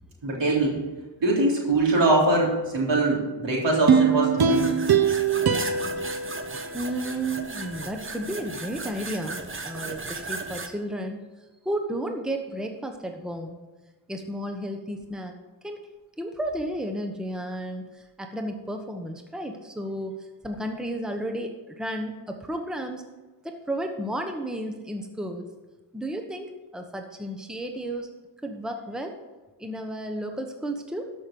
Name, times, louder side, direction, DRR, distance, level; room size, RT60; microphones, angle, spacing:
voice 1, 0.2-0.8 1.2-4.8, right 2 dB, 70° right, -3 dB, 3.7 m, -22 dB
sound 1, 3.9-7.2 7.6-7.7, right 6 dB, 50° right, 1.0 m, -23 dB
sound 2, 4.4-10.7, right 3 dB, 25° right, 1.1 m, -36 dB
voice 2, 6.7-11.2 11.6-13.6 14.1-15.3 15.6-15.9 16.2-23.0 23.4-25.5 25.9-28.1 28.4-29.2 29.6-31.1, right 1 dB, ahead, 4 dB, 1.1 m, -33 dB
13.0 x 6.2 x 5.4 m, 1.2 s
cardioid pair, 75°, 46 cm